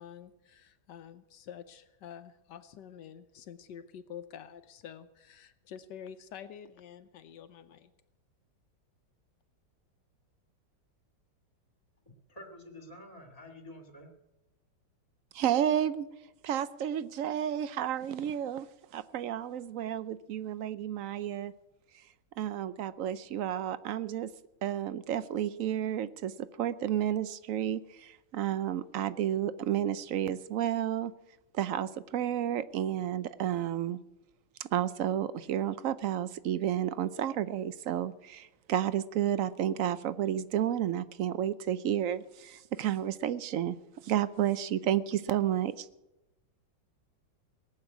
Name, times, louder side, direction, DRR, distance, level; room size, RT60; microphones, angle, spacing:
voice 1, 0.0-7.9, left 8 dB, 75° left, 11 dB, 1.4 m, -48 dB
voice 2, 12.1-14.1, left 1 dB, 20° left, 3 dB, 2.2 m, -49 dB
voice 3, 15.3-16.1 16.4-18.7 18.9-21.5 22.4-24.3 24.6-31.1 31.5-34.0 34.6-43.8 44.0-45.9, right 10 dB, 65° right, 15 dB, 0.8 m, -31 dB
18.5 x 8.0 x 9.4 m, 0.96 s
omnidirectional pair, 2.0 m